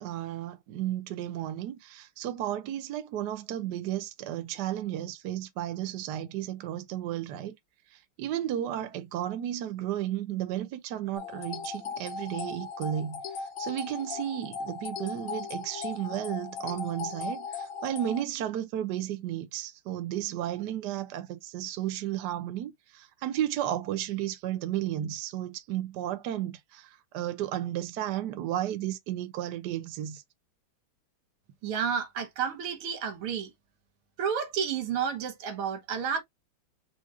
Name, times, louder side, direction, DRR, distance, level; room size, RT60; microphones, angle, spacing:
voice 1, 0.0-7.5 8.2-30.2, right 12 dB, 60° right, 1.2 m, -33 dB
sound 1, 11.1-18.2, left 5 dB, 70° left, 1.6 m, -38 dB
voice 2, 31.6-33.5 34.2-36.2, right 7 dB, 90° right, 1.9 m, -31 dB
5.0 x 2.4 x 4.2 m
omnidirectional pair, 2.3 m